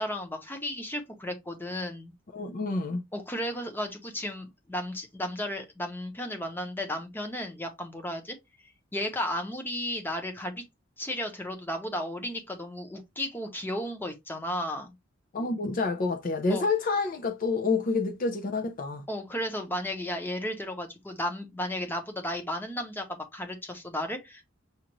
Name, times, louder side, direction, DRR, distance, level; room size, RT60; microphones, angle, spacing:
voice 1, 0.0-2.1 3.1-8.4 8.9-10.6 11.0-14.9 16.5-16.6 19.1-24.4, left 1 dB, 10° left, 0.8 m, -34 dB
voice 2, 2.3-3.0 15.3-19.0, left 3 dB, 45° left, 0.5 m, -28 dB
6.4 x 2.5 x 3.0 m
head